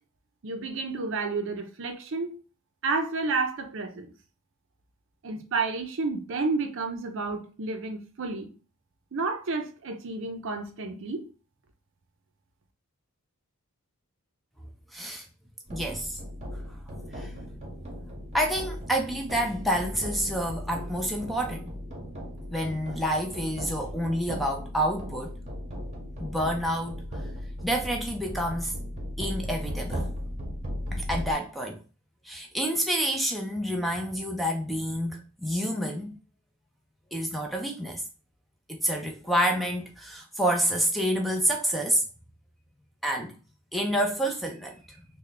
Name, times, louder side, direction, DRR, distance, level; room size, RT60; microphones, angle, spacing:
voice 1, 0.4-2.4 2.8-4.1 5.2-8.5 9.1-11.3, right 3 dB, 60° right, 0.5 m, -31 dB
voice 2, 14.9-15.3 15.7-16.2 17.1-17.3 18.3-21.7 22.5-25.3 26.2-27.0 27.6-28.7 29.2-30.1 30.9-31.8 32.2-36.2 37.1-38.0 38.7-42.0 43.0-43.4 43.7-45.0, equal, ahead, 0.4 m, -28 dB
sound 1, 15.7-31.3, equal, 30° right, 0.8 m, -37 dB
3.2 x 2.2 x 3.9 m
head